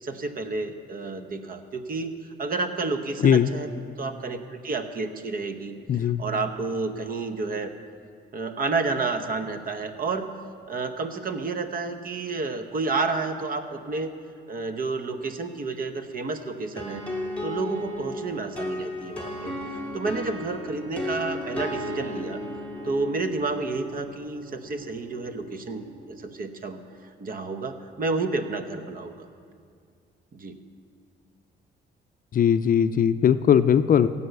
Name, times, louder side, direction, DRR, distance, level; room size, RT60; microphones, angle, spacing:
voice 1, 0.0-2.1 2.4-3.7 4.0-7.7 8.3-10.3 10.7-14.1 14.5-17.0 17.4-19.5 19.9-22.4 22.8-26.8 27.2-29.3 30.3-30.5, right 3 dB, 45° right, 8 dB, 0.9 m, -30 dB
voice 2, 5.9-6.2 32.3-34.1, left 8 dB, 45° left, 11 dB, 0.5 m, -19 dB
sound 1, 16.8-26.4, left 1 dB, 5° left, 2.3 m, -35 dB
16.0 x 5.5 x 7.9 m, 2.2 s
cardioid pair, 90°, 20 cm